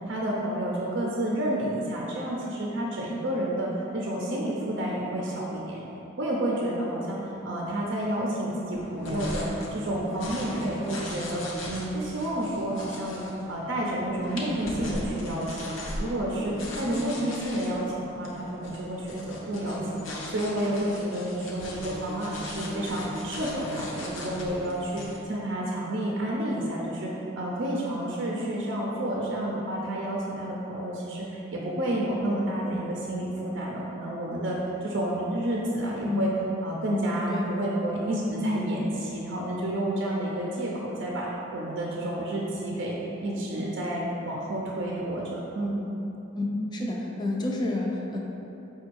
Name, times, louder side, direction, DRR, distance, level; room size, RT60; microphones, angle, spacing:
voice 1, 0.0-5.8 6.2-13.2 13.5-36.3 36.6-45.8, right 1 dB, 60° right, -3 dB, 0.5 m, -30 dB
sound 1, 8.7-25.2, left 1 dB, 75° left, 0.7 m, -38 dB
voice 2, 46.7-48.2, left 2 dB, 20° left, -2 dB, 0.4 m, -29 dB
5.1 x 2.3 x 4.5 m, 3.0 s
head